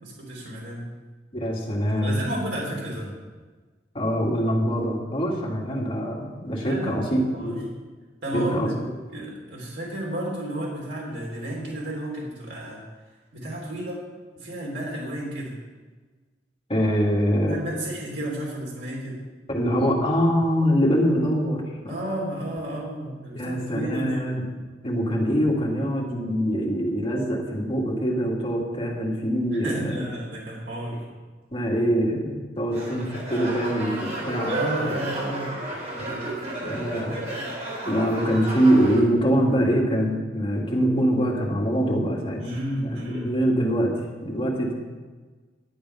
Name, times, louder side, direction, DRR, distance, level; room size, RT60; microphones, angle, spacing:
voice 1, 0.0-0.9 2.0-3.1 6.6-7.6 8.2-8.8 9.1-12.8 13.3-14.0 14.3-15.6 17.4-19.2 21.9-24.2 29.5-31.1 34.5-35.6 42.4-43.3, right 1 dB, 80° right, -4 dB, 3.1 m, -32 dB
voice 2, 1.3-2.3 3.9-7.7 8.3-8.7 16.7-17.7 19.5-21.9 23.3-24.5 24.8-30.0 31.5-34.6 35.9-36.3 36.6-37.3 37.8-42.4 43.1-43.9 44.2-44.7, equal, 30° left, -2 dB, 2.2 m, -24 dB
sound 1, 32.7-39.0, right 2 dB, 40° right, 4.0 m, -32 dB
11.5 x 8.6 x 5.6 m, 1.4 s
head